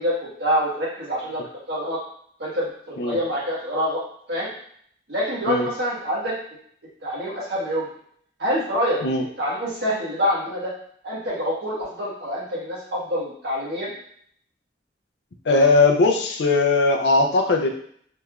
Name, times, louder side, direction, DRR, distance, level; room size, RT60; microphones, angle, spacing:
voice 1, 0.0-1.4 1.7-2.0 2.4-4.0 4.3-4.5 5.1-6.3 7.0-7.9 8.4-9.0 9.4-10.7 11.0-13.9, equal, 70° right, -6 dB, 1.4 m, -26 dB
voice 2, 15.4-17.7, left 3 dB, 70° left, 3 dB, 0.5 m, -19 dB
3.3 x 3.1 x 2.4 m, 0.62 s
head